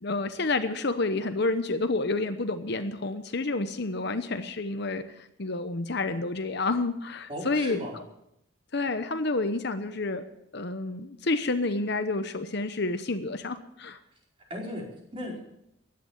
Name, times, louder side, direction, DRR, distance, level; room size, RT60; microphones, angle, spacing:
voice 1, 0.0-5.0 5.4-7.8 8.7-10.2 10.5-14.0, left 3 dB, 50° left, 9 dB, 0.9 m, -29 dB
voice 2, 7.3-8.0 14.5-15.5, equal, 25° right, -2 dB, 4.9 m, -36 dB
15.5 x 11.0 x 7.3 m, 0.80 s
head